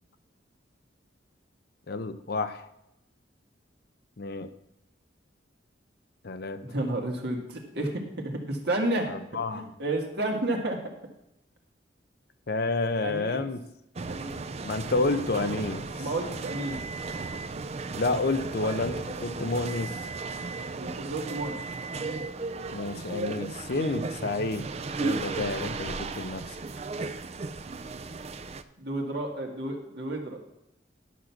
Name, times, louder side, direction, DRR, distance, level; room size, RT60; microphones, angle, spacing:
voice 1, 1.9-2.7 4.2-4.5 6.2-6.6 9.1-9.6 12.5-13.6 14.6-15.8 17.9-20.1 22.7-24.7 25.0-26.6, left 3 dB, 55° left, 11 dB, 0.7 m, -30 dB
voice 2, 6.6-9.2 9.5-10.8 13.0-13.5 14.1-14.4 16.0-16.8 20.8-21.6 28.8-30.4, right 1 dB, 60° right, 1 dB, 2.0 m, -31 dB
sound 1, 14.0-28.6, right 3 dB, 35° right, 0.5 m, -35 dB
11.0 x 6.4 x 5.9 m, 0.82 s
head